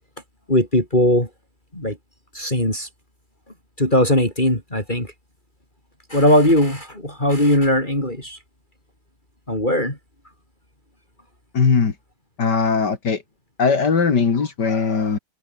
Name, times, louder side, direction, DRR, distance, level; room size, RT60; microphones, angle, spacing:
voice 1, 0.5-1.3 1.7-2.0 2.3-2.9 3.8-5.1 6.1-8.4 9.5-10.0, left 1 dB, 25° left, 6.4 m, -19 dB
voice 2, 11.5-11.9 12.4-13.2 13.6-15.2, left 5 dB, 70° left, 2.9 m, -19 dB
omnidirectional pair, 1.9 m